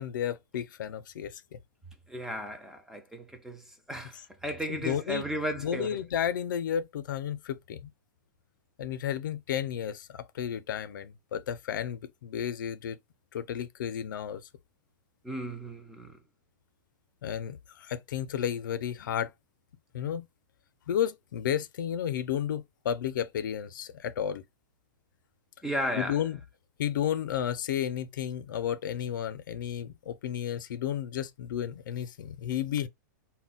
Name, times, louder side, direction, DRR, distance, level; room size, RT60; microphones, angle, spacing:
voice 1, 0.0-1.6 4.0-4.2 4.7-5.3 5.6-7.9 8.8-13.0 13.3-14.4 17.2-19.3 19.9-20.3 20.9-24.4 26.0-26.4 26.8-32.9, left 9 dB, 80° left, 0.4 m, -32 dB
voice 2, 2.1-3.6 3.9-4.1 4.4-6.0 15.2-16.1 25.6-26.2, equal, 5° right, 0.3 m, -34 dB
2.2 x 2.0 x 3.8 m
hypercardioid pair, 155°, 10 cm